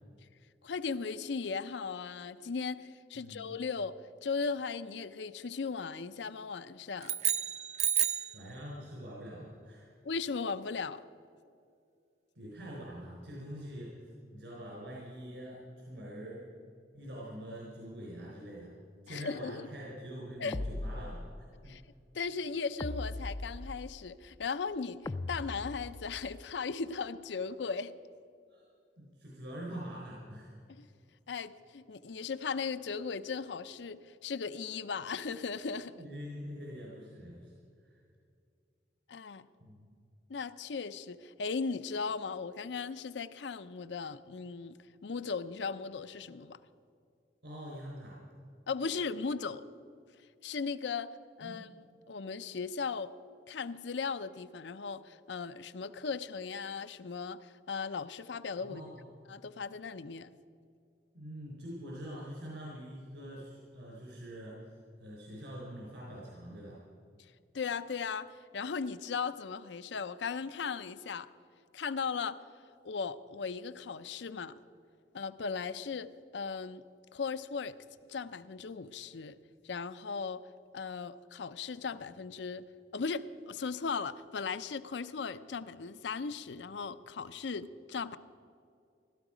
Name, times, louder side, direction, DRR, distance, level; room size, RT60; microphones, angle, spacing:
voice 1, 0.6-3.9 4.2-7.2 10.0-11.0 19.1-19.7 20.4-20.6 21.7-21.8 22.1-27.9 30.7-30.8 31.3-36.0 39.1-39.4 40.3-44.8 45.0-46.6 48.7-49.6 50.4-51.1 51.4-51.7 52.1-53.1 53.5-58.8 59.3-60.3 67.5-71.3 71.7-72.4 72.8-74.5 75.1-76.8 77.1-77.7 78.1-79.4 79.6-80.4 80.7-82.6 82.9-88.2, left 5 dB, 80° left, 14 dB, 0.5 m, -37 dB
voice 2, 3.1-3.6 8.3-9.9 12.4-16.4 16.9-18.7 19.0-21.3 21.6-21.7 28.5-28.6 29.0-30.6 35.9-37.5 37.8-38.0 39.6-39.8 47.4-48.2 51.4-51.6 58.6-59.1 61.1-66.8, equal, 75° right, -5 dB, 4.1 m, -45 dB
sound 1, 7.0-8.4, right 10 dB, 40° right, 0.5 m, -30 dB
sound 2, 20.5-21.6 22.8-24.1 25.1-26.3, left 2 dB, 20° left, 0.3 m, -39 dB
16.0 x 12.5 x 5.0 m, 2.4 s
head